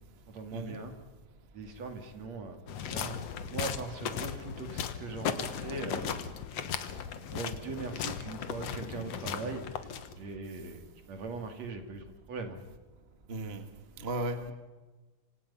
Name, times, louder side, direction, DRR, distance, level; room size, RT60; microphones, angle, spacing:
voice 1, 0.3-0.9 1.5-2.6 2.9-3.2 3.5-6.2 7.3-9.9 10.2-12.6, right 3 dB, 60° right, 5 dB, 3.7 m, -40 dB
sound 1, 2.7-10.4, left 8 dB, 60° left, 2.2 m, -37 dB
voice 2, 13.3-13.6 14.0-14.5, right 1 dB, 25° right, 7 dB, 1.4 m, -35 dB
26.5 x 26.0 x 5.7 m, 1.2 s
omnidirectional pair, 3.6 m